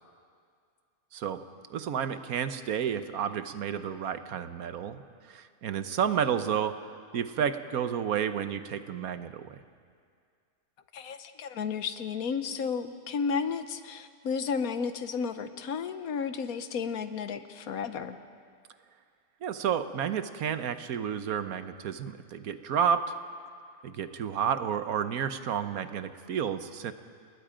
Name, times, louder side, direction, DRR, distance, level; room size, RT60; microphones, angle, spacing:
voice 1, 1.1-1.4 1.7-6.8 7.1-9.6 19.4-23.1 23.8-26.9, right 8 dB, 85° right, 10 dB, 1.4 m, -31 dB
voice 2, 10.9-18.2, left 6 dB, 80° left, 10 dB, 1.4 m, -33 dB
29.5 x 19.5 x 5.1 m, 2.2 s
omnidirectional pair, 1.5 m